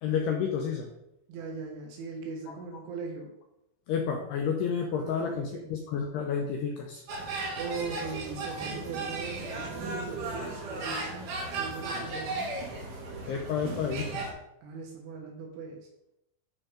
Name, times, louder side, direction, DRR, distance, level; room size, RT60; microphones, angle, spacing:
voice 1, 0.0-0.9 3.9-7.0 12.1-12.2 13.3-14.2, left 7 dB, 85° left, 2 dB, 2.3 m, -30 dB
voice 2, 1.3-3.3 4.9-5.6 7.6-11.3 11.6-12.5 13.5-13.8 14.6-15.9, right 4 dB, 75° right, 0 dB, 3.7 m, -39 dB
sound 1, 7.1-14.3, right 3 dB, 55° right, 2.6 m, -36 dB
12.0 x 4.3 x 5.1 m, 0.83 s
omnidirectional pair, 5.8 m